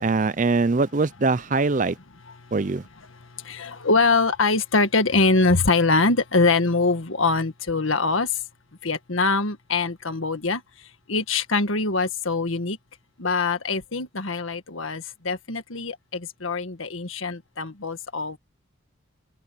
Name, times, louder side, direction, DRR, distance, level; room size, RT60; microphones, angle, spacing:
voice 1, 0.0-2.0 2.5-2.8, right 3 dB, 40° right, 0.5 m, -22 dB
voice 2, 3.4-8.3 8.8-10.6 11.1-12.8 13.2-18.4, left 3 dB, 85° left, 1.7 m, -23 dB
head